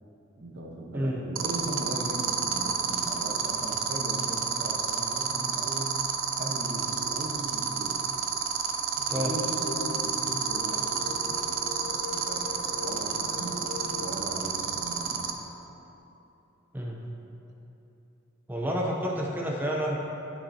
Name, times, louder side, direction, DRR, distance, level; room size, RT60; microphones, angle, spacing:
voice 1, 0.4-6.0 6.4-8.0 9.0-11.5 12.2-15.3, right 1 dB, 55° right, 0 dB, 1.0 m, -38 dB
sound 1, 1.4-15.3, right 7 dB, 90° right, 0.6 m, -29 dB
sound 2, 9.1-14.4, left 3 dB, 45° left, 0.8 m, -40 dB
voice 2, 18.5-20.0, equal, 10° right, -2 dB, 0.6 m, -29 dB
11.5 x 5.9 x 2.7 m, 3.0 s
head